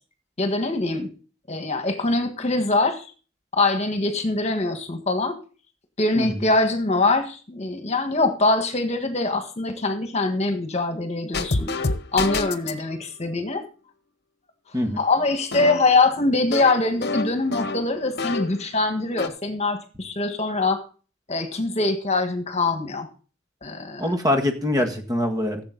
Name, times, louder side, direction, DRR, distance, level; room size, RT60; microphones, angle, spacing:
voice 1, 0.4-1.1 1.5-3.1 3.5-5.4 6.0-11.7 12.1-13.6 15.0-20.8 21.3-23.1 23.6-24.1 24.8-24.9, left 3 dB, 35° left, 7 dB, 1.6 m, -23 dB
sound 1, 11.3-12.8 15.5-18.7 19.0-19.3, left 3 dB, 60° left, 1.0 m, -28 dB
voice 2, 24.0-25.6, left 1 dB, 20° right, 4 dB, 1.8 m, -23 dB
15.5 x 7.9 x 3.9 m, 0.37 s
head